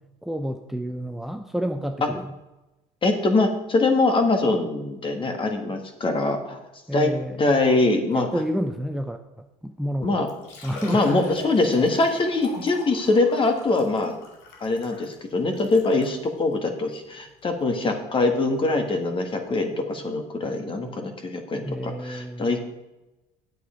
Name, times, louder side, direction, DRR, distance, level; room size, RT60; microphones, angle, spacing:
voice 1, 0.2-2.3 6.9-7.4 8.1-10.3 10.6-11.1 21.6-22.5, equal, ahead, 6 dB, 0.7 m, -29 dB
voice 2, 3.0-6.6 6.9-7.1 7.4-8.3 10.0-10.3 10.9-14.1 14.6-22.6, left 2 dB, 35° left, 5 dB, 1.8 m, -23 dB
Liquid, 9.8-9.9 10.3-16.2 16.9-17.0 17.4-17.5 19.2-19.3 19.4-19.5, left 3 dB, 90° left, 2.3 m, -41 dB
8.4 x 8.1 x 5.1 m, 0.99 s
supercardioid pair, 90°, 15 cm